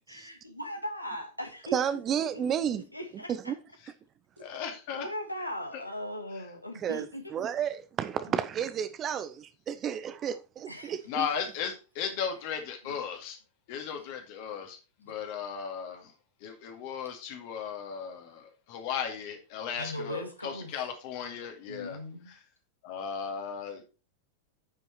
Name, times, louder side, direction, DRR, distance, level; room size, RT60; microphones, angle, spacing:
voice 1, 0.1-3.6 4.6-7.4 8.3-8.4 10.7-11.4 12.4-12.5 12.8-13.0 13.8-14.0 19.7-20.9 21.7-22.3, left 1 dB, 85° left, 1.8 m, -40 dB
voice 2, 1.7-2.8 3.5-3.6 6.8-7.0 7.3-11.3, right 8 dB, 30° right, 0.6 m, -31 dB
voice 3, 4.4-5.1 11.1-13.4 13.7-16.1 16.4-22.0 22.8-23.8, left 7 dB, 45° left, 2.1 m, -36 dB
9.7 x 5.6 x 4.4 m
figure-of-eight pair, 90°, 0 cm